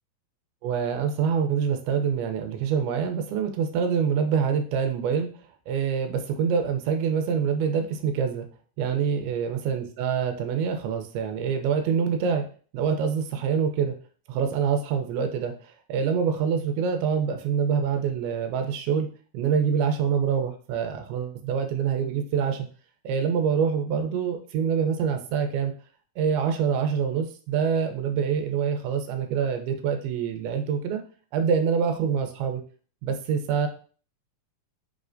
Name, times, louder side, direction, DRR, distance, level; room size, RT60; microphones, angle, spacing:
voice 1, 0.6-5.3 5.7-8.5 8.8-12.5 12.7-13.9 14.3-19.1 19.3-22.7 23.0-25.7 26.2-31.0 31.3-32.6 33.0-33.7, right 7 dB, 90° right, 6 dB, 2.5 m, -25 dB
5.4 x 3.3 x 2.5 m, 0.41 s
omnidirectional pair, 4.3 m